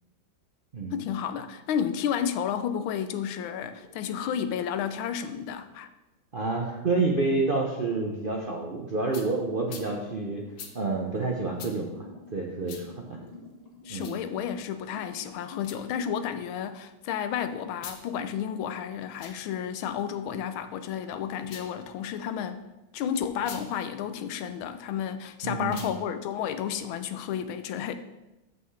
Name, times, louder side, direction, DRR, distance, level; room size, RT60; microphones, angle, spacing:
voice 1, 0.9-5.9 13.8-22.6 22.9-28.0, left 8 dB, 85° left, 10 dB, 1.5 m, -31 dB
sound 1, 3.7-5.1 6.7-6.9 9.2-9.3 9.5-15.3, left 2 dB, 25° left, 1.2 m, -50 dB
voice 2, 6.3-10.4 10.7-12.1 12.3-13.2 13.9-14.1 25.4-25.9, right 3 dB, 60° right, -1 dB, 0.5 m, -28 dB
sound 2, 9.1-9.3 9.7-9.9 10.6-10.7 11.6-11.7 12.7-12.8 13.9-14.2 15.6-15.8 17.7-18.0 19.1-19.4 21.4-21.7 23.4-23.6 25.6-26.0, left 6 dB, 65° left, 1.5 m, -43 dB
12.5 x 5.7 x 3.3 m, 1.0 s
omnidirectional pair, 2.2 m